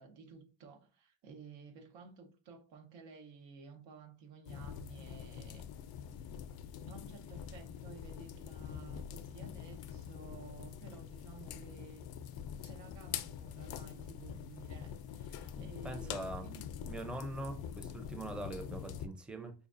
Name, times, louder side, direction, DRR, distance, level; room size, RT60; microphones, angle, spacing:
voice 1, 0.0-5.7 6.9-12.0 12.6-16.7, right 5 dB, 85° right, 1.0 m, -54 dB
sound 1, 4.4-19.1, left 8 dB, 60° left, 0.5 m, -45 dB
voice 2, 15.8-16.5 16.8-19.5, right 2 dB, ahead, 0.5 m, -42 dB
4.9 x 2.4 x 2.5 m
cardioid pair, 100°, 43 cm